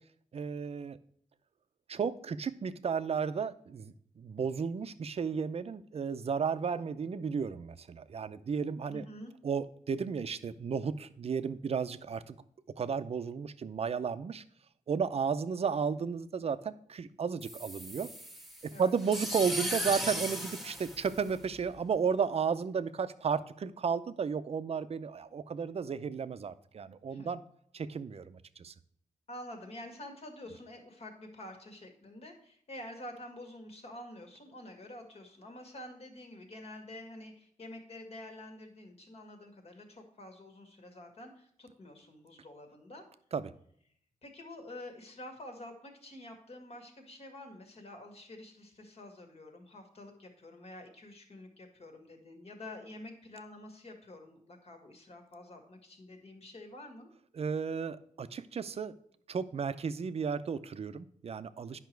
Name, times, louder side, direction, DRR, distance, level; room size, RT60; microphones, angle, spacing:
voice 1, 0.3-1.0 1.9-9.0 9.4-12.3 12.8-14.4 14.9-18.1 18.8-27.4 27.7-28.7 43.3-43.5 57.4-58.9 59.3-61.8, right 6 dB, 50° right, 12 dB, 0.6 m, -33 dB
voice 2, 8.9-9.3 18.7-19.0 27.1-27.3 29.3-43.1 44.2-57.1, left 1 dB, 50° left, 4 dB, 1.9 m, -48 dB
sound 1, 17.4-21.8, equal, ahead, 1.2 m, -37 dB
10.5 x 5.8 x 4.5 m, 0.64 s
wide cardioid pair, 175°, 14 cm